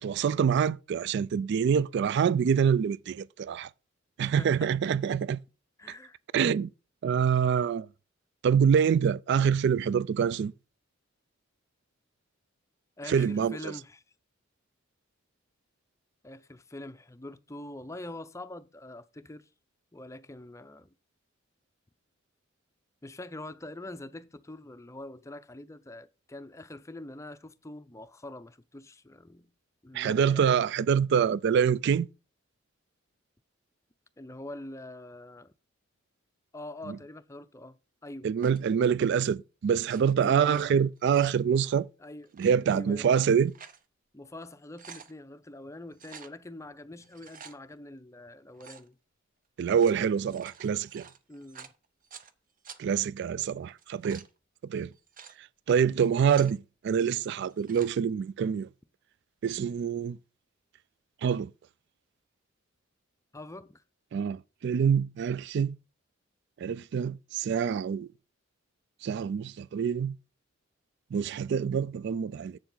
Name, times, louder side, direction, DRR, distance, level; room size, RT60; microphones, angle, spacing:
voice 1, 0.0-3.7 4.2-5.4 6.3-6.7 7.0-7.9 8.4-10.5 13.1-13.7 29.9-32.1 36.9-37.0 38.2-41.9 42.4-43.5 49.6-51.0 52.8-54.2 54.7-54.9 55.7-58.7 59.4-60.2 61.2-61.5 64.1-65.8 66.6-68.1 69.0-70.1 71.1-72.6, right 7 dB, 60° right, 0.3 m, -26 dB
voice 2, 4.2-4.9 5.8-6.2 13.0-14.0 16.2-19.5 19.9-20.9 23.0-29.5 29.8-30.6 34.2-35.5 36.5-38.3 40.2-40.7 42.0-42.3 42.7-43.2 44.1-49.0 51.3-51.7 63.3-63.8, left 1 dB, 15° left, 0.5 m, -44 dB
sound 1, 38.4-38.7 39.7-40.6 41.0-41.4 42.2-42.5 43.2-43.8 44.2-44.3 44.6-45.1 45.9-46.3 47.0-47.6 48.5-48.9 49.6-52.3 52.6-52.8 53.7-54.3 54.9-55.4 55.9-56.6 57.4-57.9, right 7 dB, 45° right, 0.7 m, -49 dB
7.5 x 7.2 x 3.9 m
head